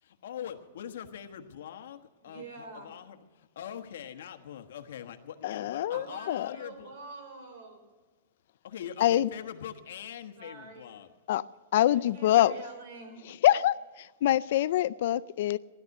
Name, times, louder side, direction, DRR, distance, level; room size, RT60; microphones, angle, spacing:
voice 1, 0.0-6.9 8.6-11.1, left 9 dB, 70° left, 7 dB, 1.4 m, -43 dB
voice 2, 2.2-2.9 5.9-7.8 10.4-11.0 11.9-13.2, right 3 dB, 55° right, 6 dB, 4.2 m, -46 dB
voice 3, 5.4-6.5 9.0-9.3 11.3-11.4 11.7-12.5 13.4-15.6, left 13 dB, 55° left, 16 dB, 0.4 m, -25 dB
16.5 x 12.0 x 6.6 m, 1.3 s
supercardioid pair, 170°, 0 cm